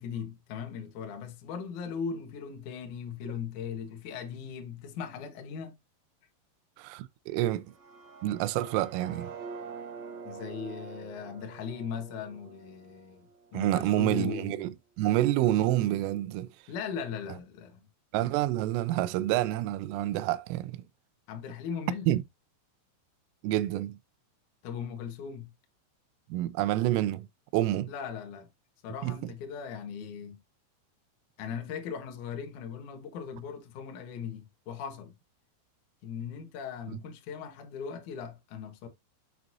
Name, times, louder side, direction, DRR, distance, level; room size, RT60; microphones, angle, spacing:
voice 1, 0.0-5.8 10.3-14.6 16.7-17.8 21.3-22.1 24.6-25.5 27.9-28.5 28.8-30.4 31.4-35.1 36.0-38.9, left 7 dB, 75° left, 1.8 m, -38 dB
voice 2, 6.8-7.7 8.2-9.3 13.5-16.5 18.1-20.8 22.1-22.2 23.4-24.0 26.3-27.3 27.5-27.9 29.0-29.2, right 14 dB, 90° right, 3.3 m, -28 dB
sound 1, 7.6-13.6, right 5 dB, 50° right, 2.3 m, -45 dB
8.0 x 6.3 x 2.7 m
omnidirectional pair, 5.9 m